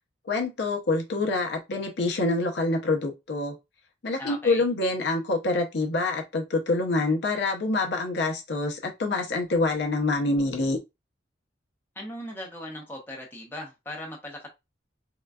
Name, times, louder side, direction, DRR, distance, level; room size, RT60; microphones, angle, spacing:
voice 1, 0.3-3.5 4.0-10.8, left 2 dB, 65° left, 0.7 m, -26 dB
voice 2, 4.2-4.7 12.0-14.5, left 1 dB, 10° left, 0.9 m, -38 dB
3.7 x 2.2 x 2.3 m
head